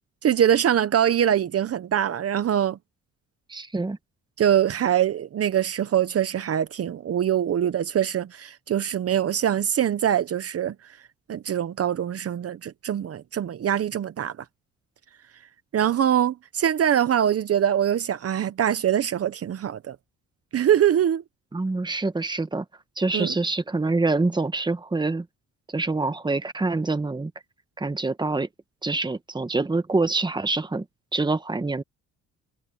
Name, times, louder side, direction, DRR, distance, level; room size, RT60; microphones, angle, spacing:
voice 1, 0.2-2.8 4.4-10.7 11.3-14.3 15.7-20.0 20.5-21.2 23.1-23.3, right 10 dB, 50° right, 1.0 m, -23 dB
voice 2, 3.5-4.0 21.5-22.6 23.0-25.2 25.7-27.3 27.8-28.5 28.8-30.8 31.1-31.8, right 3 dB, 15° right, 1.4 m, -25 dB
cardioid pair, 90°, 30 cm